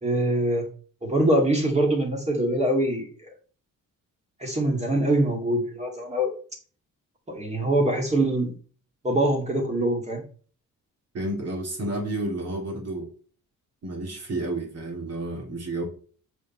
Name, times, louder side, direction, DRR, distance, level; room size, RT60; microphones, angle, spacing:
voice 1, 0.0-0.7 1.0-3.1 4.4-6.3 7.3-8.5 9.0-10.2, right 1 dB, 20° right, 2 dB, 2.1 m, -23 dB
voice 2, 11.1-13.1 13.8-15.8, right 1 dB, 45° right, 1 dB, 2.7 m, -31 dB
7.7 x 5.0 x 4.3 m, 0.41 s
wide cardioid pair, 175°, 34 cm